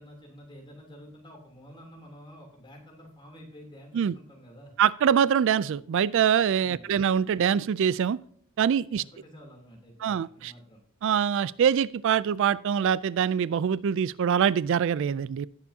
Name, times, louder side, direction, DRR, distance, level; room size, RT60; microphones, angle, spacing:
voice 1, 0.0-4.7 6.6-6.9 8.9-10.1 10.3-10.8, equal, 20° left, 0 dB, 3.1 m, -49 dB
voice 2, 4.8-8.2 8.6-9.0 10.0-10.5 11.0-15.5, right 8 dB, 60° right, 19 dB, 0.3 m, -24 dB
18.0 x 7.0 x 2.8 m, 0.63 s
head